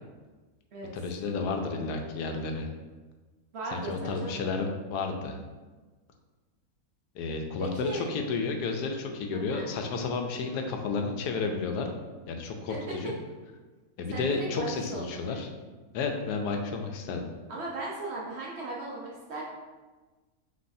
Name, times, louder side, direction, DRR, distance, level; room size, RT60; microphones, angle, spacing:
voice 1, 0.9-2.7 3.7-5.4 7.1-11.9 12.3-13.1 14.0-15.5 15.9-17.2, left 4 dB, 90° left, 4 dB, 1.2 m, -32 dB
voice 2, 3.5-4.4 7.6-8.1 9.3-9.7 12.7-13.1 14.1-15.5 17.5-19.4, right 2 dB, 55° right, -4 dB, 0.8 m, -37 dB
5.3 x 3.2 x 2.6 m, 1.3 s
omnidirectional pair, 1.7 m